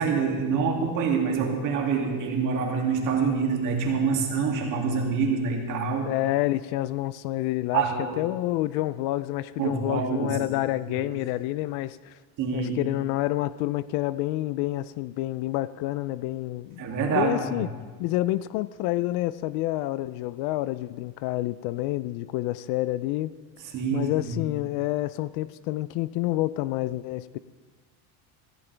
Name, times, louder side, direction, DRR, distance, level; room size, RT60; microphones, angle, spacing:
voice 1, 0.0-6.2 7.7-8.2 9.6-10.4 10.9-11.1 12.4-12.8 16.8-17.6 23.7-24.4, right 5 dB, 45° right, 0 dB, 2.5 m, -26 dB
voice 2, 6.1-7.8 8.2-12.1 12.5-17.7 18.0-23.3 23.9-27.4, left 16 dB, 60° left, 17 dB, 0.5 m, -28 dB
16.0 x 15.0 x 3.4 m, 1.4 s
cardioid pair, 155°, 43 cm